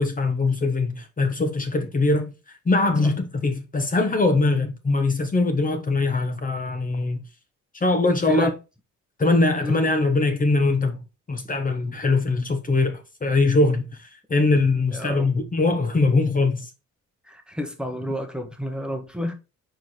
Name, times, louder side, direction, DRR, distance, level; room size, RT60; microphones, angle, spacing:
voice 1, 0.0-2.3 2.7-7.2 7.7-8.5 9.2-11.0 11.3-16.7, left 3 dB, 25° left, 1.1 m, -22 dB
voice 2, 14.9-15.3 17.2-19.3, left 1 dB, 5° right, 1.2 m, -29 dB
4.8 x 4.6 x 4.4 m
cardioid pair, 90°, 30 cm